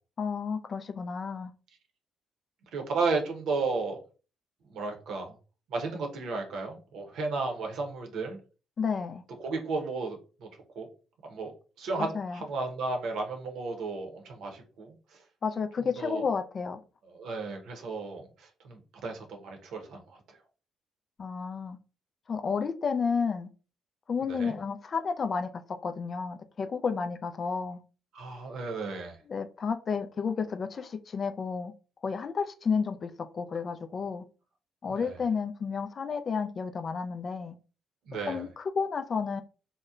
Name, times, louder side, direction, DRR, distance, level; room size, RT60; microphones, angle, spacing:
voice 1, 0.2-1.5 8.8-9.2 12.0-12.4 15.4-16.8 21.2-21.8 22.3-23.5 24.1-25.5 25.8-27.8 29.3-31.7 32.0-34.2 34.8-37.6 38.3-39.4, left 5 dB, 50° left, 0.3 m, -31 dB
voice 2, 2.7-4.0 4.7-5.3 5.7-8.4 9.4-10.5 10.8-10.9 11.3-11.5 11.8-14.9 16.0-16.2 17.1-20.2 24.3-24.6 28.1-29.2 34.9-35.1 38.1-38.5, right 3 dB, 70° right, 0.7 m, -33 dB
2.8 x 2.0 x 2.4 m
hypercardioid pair, 50°, 0 cm